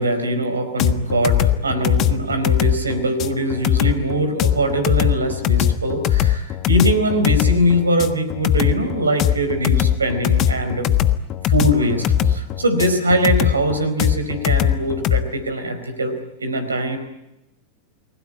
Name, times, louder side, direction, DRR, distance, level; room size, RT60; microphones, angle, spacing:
voice 1, 0.0-10.9 11.5-17.0, right 1 dB, 75° right, 9 dB, 4.4 m, -22 dB
sound 1, 0.8-15.2, left 11 dB, 35° left, 1.3 m, -20 dB
29.5 x 20.5 x 9.7 m, 0.96 s
figure-of-eight pair, 90°, 0 cm